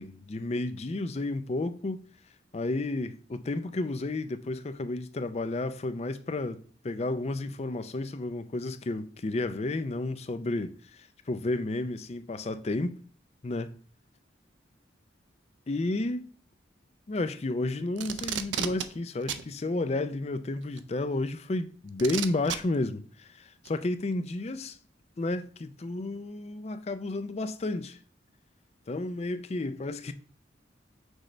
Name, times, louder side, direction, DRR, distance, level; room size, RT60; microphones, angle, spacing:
voice 1, 0.0-2.0 2.5-13.0 13.4-13.7 15.7-16.3 17.1-24.8 25.2-28.0 28.9-30.1, left 2 dB, 35° left, 0.4 m, -32 dB
Packing tape duct tape, 18.0-18.9 19.3-19.4 20.8-20.9 22.0-22.6 23.7-23.8, right 9 dB, 75° right, 0.5 m, -32 dB
6.3 x 3.2 x 4.9 m
head